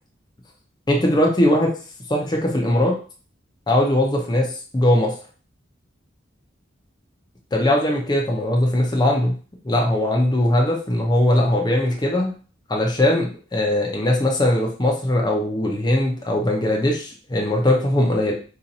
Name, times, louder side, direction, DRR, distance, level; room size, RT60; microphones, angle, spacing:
voice 1, 0.9-1.7 2.1-3.0 3.7-4.4 4.7-5.1 7.5-9.3 9.6-12.3 12.7-18.3, left 1 dB, 20° left, 0 dB, 0.6 m, -20 dB
2.7 x 2.4 x 4.0 m, 0.38 s
head